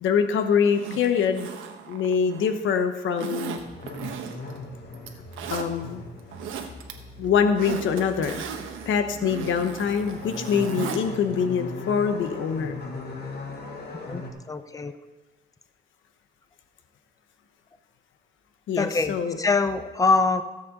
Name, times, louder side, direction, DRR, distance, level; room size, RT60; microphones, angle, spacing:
voice 1, 0.0-1.5 1.9-3.6 5.5-6.0 7.2-8.4 8.9-12.8 18.7-19.4, left 6 dB, 75° left, 8 dB, 1.0 m, -24 dB
Zipper (clothing), 0.7-2.6 3.2-4.6 4.9-5.7 6.2-6.9 7.2-11.0 11.3-11.4, right 7 dB, 85° right, 1.2 m, -36 dB
sound 1, 3.6-14.3, left 3 dB, 55° left, 2.1 m, -39 dB
voice 2, 13.9-14.9 18.8-20.4, left 3 dB, 15° left, 10 dB, 0.8 m, -24 dB
17.0 x 7.7 x 3.8 m, 1.2 s
cardioid pair, 90°, 20 cm